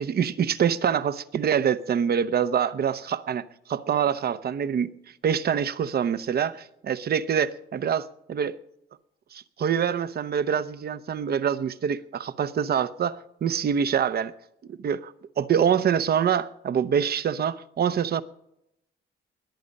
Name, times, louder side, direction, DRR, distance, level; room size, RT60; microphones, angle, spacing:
voice 1, 0.0-4.9 5.2-8.6 9.3-14.3 14.7-18.2, right 8 dB, 50° right, 0.8 m, -25 dB
21.0 x 8.6 x 5.4 m
cardioid pair, 90°, 20 cm